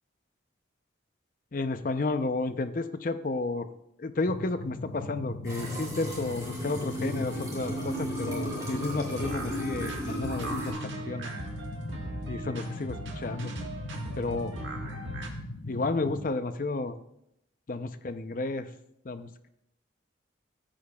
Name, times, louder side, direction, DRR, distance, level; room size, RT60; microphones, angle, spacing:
voice 1, 1.5-3.7 4.0-11.3 12.3-13.5 14.2-14.5 15.7-16.9 17.7-18.7 19.0-19.5, left 3 dB, 45° left, 9 dB, 0.5 m, -32 dB
sound 1, 4.2-16.3, left 2 dB, 65° left, 0.9 m, -39 dB
sound 2, 5.4-10.7, equal, 20° right, 3.0 m, -35 dB
sound 3, 7.3-15.3, right 2 dB, 80° right, 1.4 m, -40 dB
14.0 x 8.7 x 2.3 m, 0.78 s
head